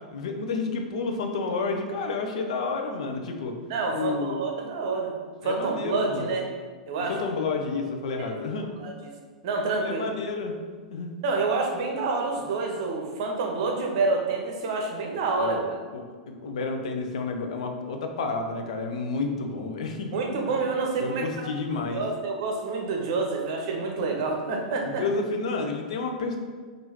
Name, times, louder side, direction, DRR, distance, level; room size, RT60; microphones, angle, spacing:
voice 1, 0.0-3.6 3.9-4.4 5.4-6.3 7.1-8.7 9.8-10.6 10.9-11.2 15.4-15.7 15.9-20.2 20.5-20.6 21.0-22.0 24.8-26.4, left 4 dB, 60° left, 4 dB, 0.5 m, -30 dB
voice 2, 3.7-5.1 5.4-6.5 6.9-7.1 8.2-8.3 8.8-9.1 9.4-10.0 11.2-15.8 20.1-21.5 21.9-25.0, right 3 dB, 45° right, 1 dB, 0.7 m, -28 dB
5.4 x 2.6 x 2.9 m, 1.5 s
figure-of-eight pair, 95°, 4 cm